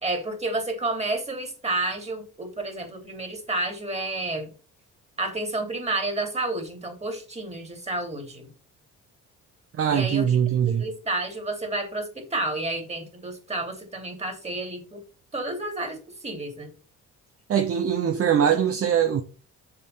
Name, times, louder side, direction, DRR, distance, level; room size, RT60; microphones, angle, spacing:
voice 1, 0.0-4.5 5.2-8.5 9.9-10.4 10.8-15.0 15.3-16.0 16.2-16.7, right 2 dB, 20° right, 3.1 m, -30 dB
voice 2, 9.7-10.9 17.5-19.2, right 8 dB, 50° right, 0.9 m, -22 dB
6.8 x 4.5 x 5.6 m
cardioid pair, 90°, 30 cm